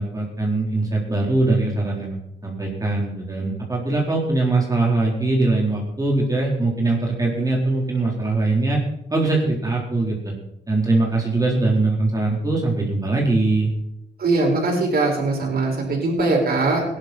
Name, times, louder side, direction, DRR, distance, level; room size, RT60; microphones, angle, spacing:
voice 1, 0.0-2.2 2.4-8.8 9.1-10.3 10.7-13.7, right 2 dB, 15° right, -2 dB, 3.9 m, -21 dB
voice 2, 14.2-16.8, right 3 dB, 50° right, -1 dB, 5.5 m, -21 dB
17.0 x 11.5 x 4.3 m, 0.82 s
cardioid pair, 90°, 20 cm